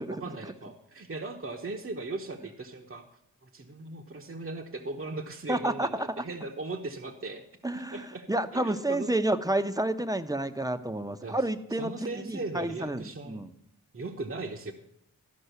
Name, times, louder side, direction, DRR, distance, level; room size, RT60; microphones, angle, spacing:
voice 1, 0.0-3.0 3.4-7.4 7.7-9.1 11.2-11.4 11.8-13.4 13.9-14.7, right 3 dB, 40° right, 3 dB, 1.1 m, -38 dB
voice 2, 5.5-6.2 7.6-13.5, right 1 dB, 10° right, 9 dB, 0.8 m, -30 dB
13.0 x 5.4 x 6.7 m, 0.81 s
cardioid pair, 60°, 35 cm